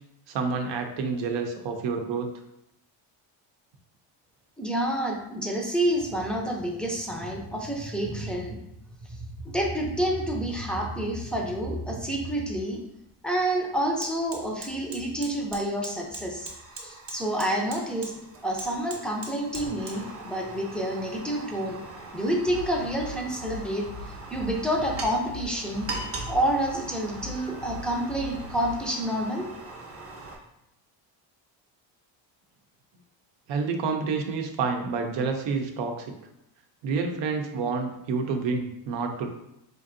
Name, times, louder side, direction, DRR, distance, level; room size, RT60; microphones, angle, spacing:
voice 1, 0.3-2.3 33.5-36.1 36.8-39.3, right 4 dB, 65° right, 4 dB, 0.7 m, -28 dB
voice 2, 4.6-8.6 9.1-12.8 13.2-16.5 16.8-18.1 18.4-21.8 22.1-23.9 24.3-25.9 26.3-29.5, right 1 dB, ahead, 0 dB, 0.5 m, -28 dB
Fire, 12.9-13.0 13.3-30.4, right 3 dB, 30° right, 0.8 m, -41 dB
sound 1, 22.3-28.8, left 3 dB, 50° left, 0.5 m, -42 dB
4.5 x 2.6 x 2.6 m, 0.84 s
cardioid pair, 115°, 47 cm